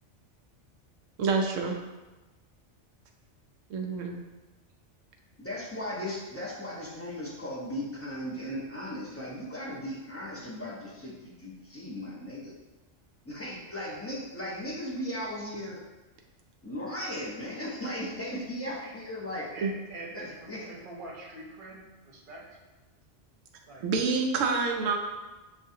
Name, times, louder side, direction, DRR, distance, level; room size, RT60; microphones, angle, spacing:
voice 1, 1.2-1.8 3.7-4.2 19.6-19.7 23.8-25.0, right 4 dB, 85° right, 2 dB, 0.9 m, -27 dB
voice 2, 5.4-12.5 13.2-15.8 16.6-19.5 20.1-20.6, left 1 dB, 15° left, -6 dB, 0.8 m, -37 dB
voice 3, 19.5-22.5 23.7-23.8, right 2 dB, 50° right, -3 dB, 1.0 m, -44 dB
6.3 x 2.5 x 2.7 m, 1.2 s
omnidirectional pair, 1.3 m